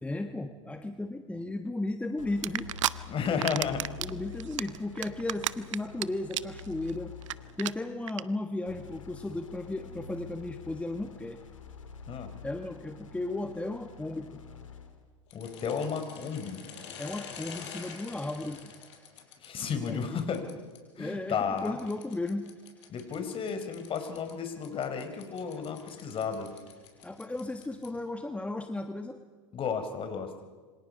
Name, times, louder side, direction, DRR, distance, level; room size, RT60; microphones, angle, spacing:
voice 1, 0.0-2.7 4.0-7.1 7.6-11.4 12.4-14.4 17.0-18.7 19.9-20.3 21.0-22.5 27.0-29.2, left 2 dB, 10° left, 7 dB, 1.4 m, -35 dB
sound 1, 2.2-7.8 8.6-15.1, left 5 dB, 85° left, 2.9 m, -47 dB
sound 2, 2.4-2.9 3.3-4.1 4.4-6.0 6.3-6.6 6.9-7.0 7.2-7.3 7.6-7.7 8.1-8.2, right 14 dB, 75° right, 0.8 m, -30 dB
voice 2, 3.1-3.8 12.1-12.3 15.3-16.6 19.4-20.5 21.0-21.8 22.9-26.5 29.5-30.3, left 6 dB, 35° left, 8 dB, 4.3 m, -33 dB
sound 3, 15.3-20.8 21.6-28.1, left 7 dB, 70° left, 5.3 m, -48 dB
28.0 x 25.5 x 5.4 m, 1.5 s
hypercardioid pair, 90°, 16 cm